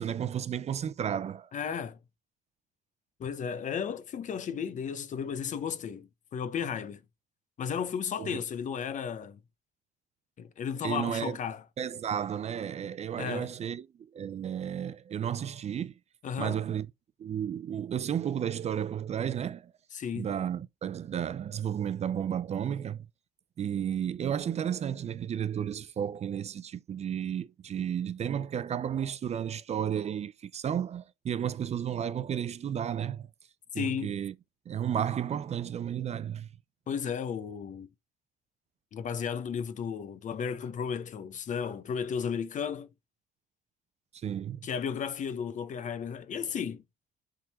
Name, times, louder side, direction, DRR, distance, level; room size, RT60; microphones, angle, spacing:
voice 1, 0.0-1.5 8.2-8.4 10.8-11.4 11.8-15.9 16.4-16.9 17.2-19.7 20.1-23.1 23.6-33.3 33.7-34.3 34.7-36.5 44.1-44.7, right 9 dB, 40° right, 0.6 m, -33 dB
voice 2, 1.5-2.0 3.2-7.0 7.6-9.4 10.4-11.6 13.2-13.5 16.2-16.6 19.9-20.3 33.7-34.2 36.9-37.9 38.9-42.9 44.6-46.8, left 7 dB, 45° left, 0.9 m, -34 dB
7.5 x 3.8 x 4.2 m
cardioid pair, 110°, 17 cm